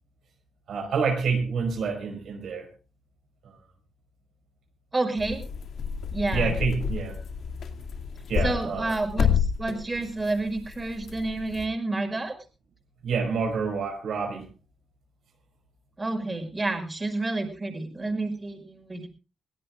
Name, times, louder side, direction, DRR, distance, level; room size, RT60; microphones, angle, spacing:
voice 1, 0.7-2.7 6.3-7.2 8.3-8.9 13.0-14.4, right 5 dB, 80° right, 3 dB, 4.8 m, -28 dB
voice 2, 4.9-5.4 6.1-6.6 8.4-12.3 16.0-19.1, right 2 dB, 25° right, 5 dB, 5.5 m, -29 dB
sound 1, 5.2-11.7, left 7 dB, 75° left, 2.2 m, -30 dB
23.0 x 17.0 x 2.5 m, 0.33 s
cardioid pair, 70°, 0 cm